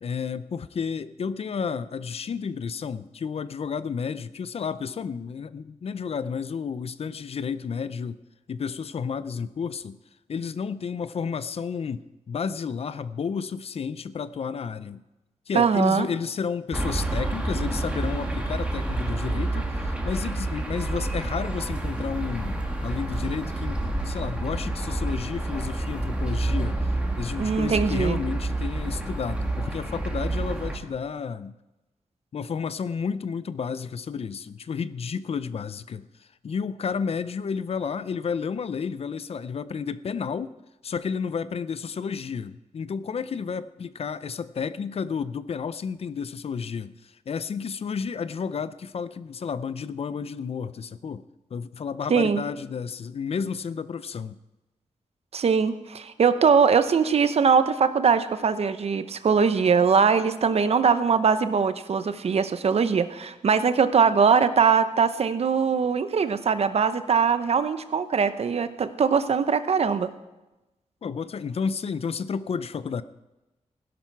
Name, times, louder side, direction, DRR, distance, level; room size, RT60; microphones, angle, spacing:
voice 1, 0.0-8.2 8.5-10.0 10.3-15.0 15.5-26.9 27.2-31.5 32.3-40.6 40.8-51.2 51.5-54.4 71.0-73.0, left 6 dB, 55° left, 0.5 m, -31 dB
voice 2, 15.5-16.1 27.4-28.2 52.1-52.4 55.3-70.1, right 6 dB, 55° right, 0.8 m, -21 dB
sound 1, 16.7-30.8, right 2 dB, 10° right, 2.0 m, -29 dB
16.5 x 11.5 x 4.7 m
wide cardioid pair, 125°, 12 cm